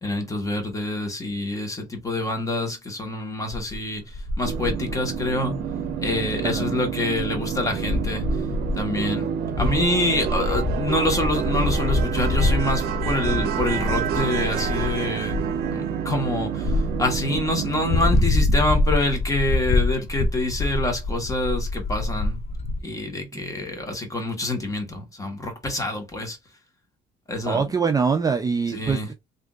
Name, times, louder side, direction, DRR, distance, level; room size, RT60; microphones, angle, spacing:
voice 1, 0.0-5.6 6.0-8.2 8.8-9.3 9.6-22.4 22.8-26.4 27.3-27.6 28.7-29.1, left 2 dB, 20° left, 1.3 m, -26 dB
sound 1, 3.5-3.8 4.1-6.2 6.5-6.6 7.1-8.9 9.5-15.0 15.3-15.7 16.6-17.5 17.8-22.8, left 2 dB, 40° left, 0.5 m, -26 dB
sound 2, 4.4-18.2, right 8 dB, 70° right, 0.6 m, -28 dB
voice 2, 27.5-29.1, right 5 dB, 20° right, 0.4 m, -23 dB
3.4 x 2.6 x 2.4 m
cardioid pair, 110°, 17 cm